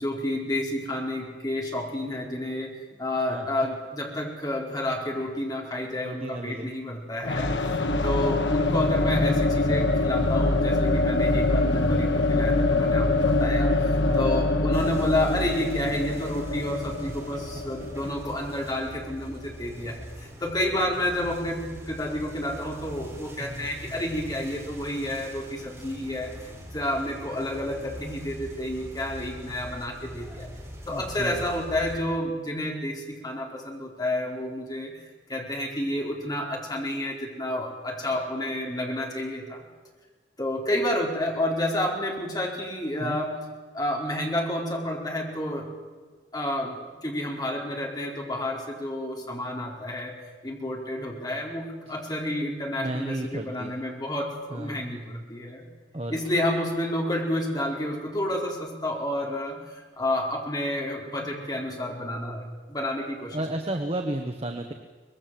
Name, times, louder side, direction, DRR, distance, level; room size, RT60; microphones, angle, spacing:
voice 1, 0.0-13.7 14.2-30.5 30.9-35.0 35.3-39.6 40.4-43.4 43.7-45.7 46.3-50.1 50.4-55.7 56.1-63.4, left 1 dB, 20° left, 0 dB, 4.4 m, -30 dB
voice 2, 6.0-6.7 14.0-14.4 23.4-23.7 30.9-31.4 43.0-43.2 52.8-53.7 54.5-54.8 55.9-56.2 63.3-64.7, right 1 dB, 30° right, 4 dB, 1.4 m, -32 dB
sound 1, 7.2-19.0, left 2 dB, 80° left, 1.6 m, -24 dB
sound 2, 14.7-32.0, equal, 15° right, 4.8 m, -42 dB
24.0 x 20.5 x 7.7 m, 1.4 s
head